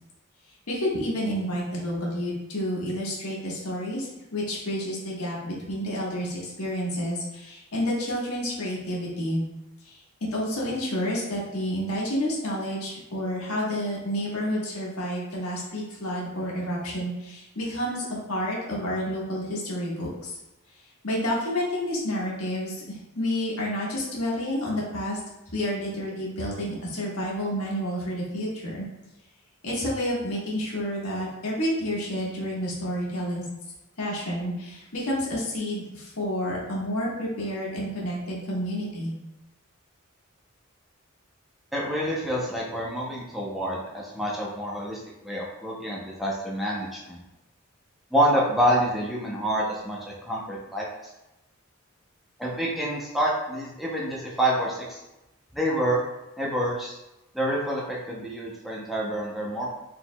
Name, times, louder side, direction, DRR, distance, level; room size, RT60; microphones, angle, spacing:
voice 1, 0.7-9.4 9.8-10.0 10.3-20.3 21.0-25.2 25.5-28.9 29.6-33.4 34.0-39.1, equal, 85° left, -4 dB, 1.4 m, -29 dB
voice 2, 41.7-47.2 48.1-50.9 52.4-55.0 55.5-56.0 56.4-57.0 57.3-59.7, right 1 dB, ahead, -5 dB, 0.6 m, -27 dB
4.7 x 3.8 x 2.2 m, 0.96 s
head